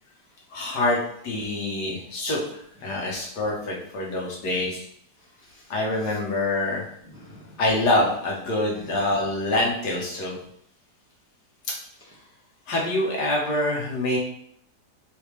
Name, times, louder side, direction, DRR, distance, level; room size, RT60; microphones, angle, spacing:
voice 1, 0.5-4.8 5.7-6.9 7.6-10.4 12.7-14.2, left 1 dB, 80° left, -2 dB, 1.6 m, -25 dB
voice 2, 5.2-5.7 6.0-6.2 7.1-7.6 8.8-9.0 12.0-12.3, equal, 10° right, -8 dB, 1.1 m, -50 dB
4.1 x 3.4 x 3.2 m, 0.68 s
omnidirectional pair, 1.8 m